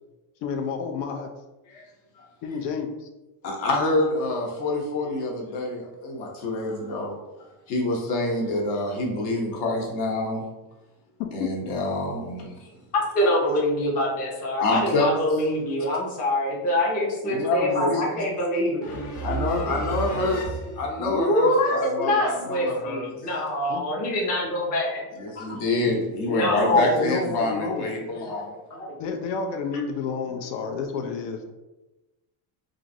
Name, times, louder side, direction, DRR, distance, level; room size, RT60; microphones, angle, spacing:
voice 1, 0.4-1.3 2.4-3.1 11.2-11.5 23.7-23.8 25.8-26.0 26.6-28.0 29.0-31.4, left 5 dB, 85° left, 4 dB, 0.6 m, -30 dB
voice 2, 3.4-7.2 7.7-10.4 11.3-12.7 14.6-15.1 17.2-18.3 19.2-20.4 20.8-23.1 25.2-28.5, left 2 dB, 55° left, 0 dB, 0.8 m, -27 dB
voice 3, 12.9-20.6 21.0-25.5 26.2-27.1 28.3-28.4 28.7-28.9, left 1 dB, 20° left, -4 dB, 0.3 m, -25 dB
2.9 x 2.5 x 2.5 m, 1.0 s
cardioid pair, 160°, 48 cm